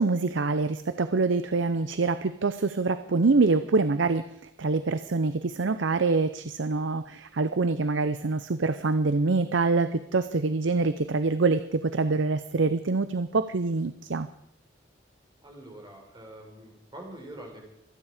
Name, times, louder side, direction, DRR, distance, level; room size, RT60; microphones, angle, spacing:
voice 1, 0.0-4.3 4.6-14.3, right 3 dB, 80° right, 12 dB, 0.6 m, -25 dB
voice 2, 15.4-17.6, right 1 dB, 25° right, 1 dB, 4.6 m, -44 dB
25.5 x 10.0 x 5.0 m, 0.74 s
head